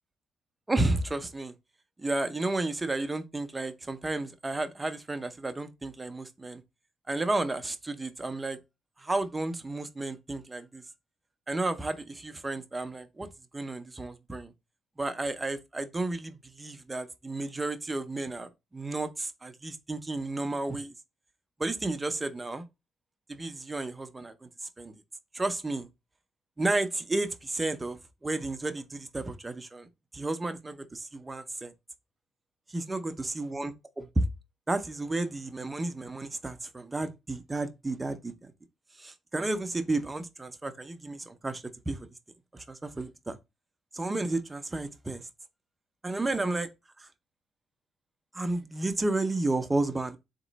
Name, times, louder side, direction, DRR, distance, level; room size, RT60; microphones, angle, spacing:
voice 1, 0.7-1.5 2.0-6.6 7.1-8.6 9.0-10.8 11.5-13.3 13.5-14.5 15.0-20.9 21.6-22.6 23.3-24.5 24.8-24.9 25.3-25.9 26.6-29.9 30.1-31.7 32.7-34.2 34.7-38.5 39.0-42.1 42.5-43.4 43.9-45.3 46.0-46.7 47.0-47.1 48.3-50.2, right 2 dB, 20° right, 0.6 m, -32 dB
3.6 x 3.0 x 4.0 m
cardioid pair, 90°, 0 cm